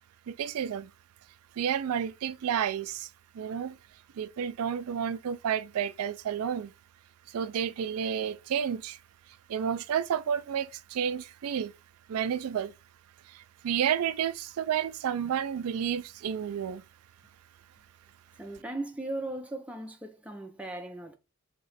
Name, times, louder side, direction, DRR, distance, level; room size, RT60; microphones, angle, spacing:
voice 1, 0.3-0.9 1.6-3.1 3.3-3.8 4.2-6.7 7.3-9.0 9.5-11.7 12.1-12.7 13.3-16.8, right 8 dB, 85° right, 0.3 m, -31 dB
voice 2, 18.4-21.2, right 2 dB, 5° right, 0.5 m, -37 dB
3.1 x 2.9 x 4.0 m
head